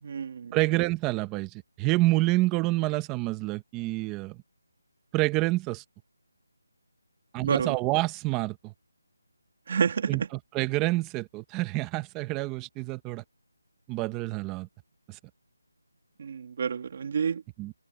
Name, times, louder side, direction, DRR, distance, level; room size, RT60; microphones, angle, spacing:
voice 1, 0.0-0.6 7.4-7.8 9.7-10.3 16.2-17.4, right 6 dB, 35° right, 3.0 m, -29 dB
voice 2, 0.5-4.4 5.1-5.8 7.3-8.7 10.1-10.2 10.5-13.2 13.9-14.7 15.1-15.2 17.6-17.7, right 20 dB, 10° right, 1.0 m, -28 dB
open air
figure-of-eight pair, 175°, 0 cm